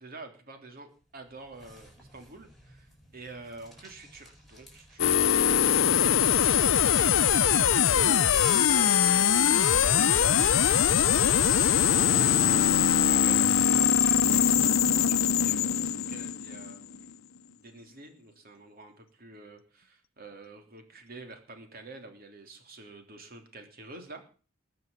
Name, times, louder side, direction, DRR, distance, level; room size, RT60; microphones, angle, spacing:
voice 1, 0.0-9.2 9.7-10.5 11.8-17.2 17.6-24.2, right 2 dB, 50° right, 5 dB, 3.2 m, -47 dB
sound 1, 0.9-13.1, equal, ahead, 7.6 m, -50 dB
sound 2, 5.0-17.0, left 8 dB, 90° left, 0.7 m, -22 dB
20.5 x 7.0 x 7.3 m, 0.39 s
head